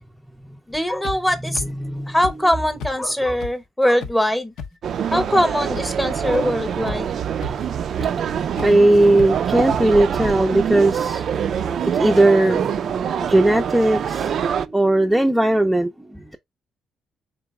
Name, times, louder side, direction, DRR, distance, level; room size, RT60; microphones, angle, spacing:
voice 1, 0.7-1.6 2.1-4.5 5.1-7.2, left 1 dB, 10° left, 0.9 m, -21 dB
sound 1, 1.0-1.2 1.5-1.7 2.2-2.3 2.8-2.9 3.4-3.5 4.0-4.1 4.6-4.7 5.2-5.3 5.8-5.9 6.3-6.4 6.8-7.1 7.4-7.5 8.0-8.1 8.6-8.7 9.2-9.3 9.7-9.8 10.2-10.3, left 5 dB, 80° left, 0.6 m, -31 dB
voice 2, 1.5-2.2 7.3-16.4, right 1 dB, 5° right, 0.5 m, -19 dB
sound 2, 4.8-14.7, right 8 dB, 60° right, 0.3 m, -24 dB
3.9 x 3.0 x 3.5 m
cardioid pair, 90°, 0 cm